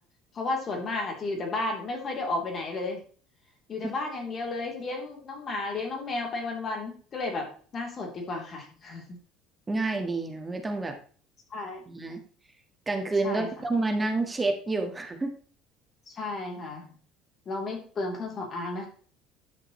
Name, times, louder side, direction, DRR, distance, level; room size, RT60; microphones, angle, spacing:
voice 1, 0.3-3.0 3.7-7.5 7.7-9.2 11.5-11.8 13.2-13.5 16.1-16.9 17.4-18.9, left 2 dB, 40° left, 1 dB, 3.3 m, -33 dB
voice 2, 9.7-11.0 11.9-12.2 12.9-15.3, right 3 dB, 20° right, 6 dB, 1.6 m, -29 dB
11.0 x 6.1 x 3.2 m, 0.43 s
hypercardioid pair, 75°, 0 cm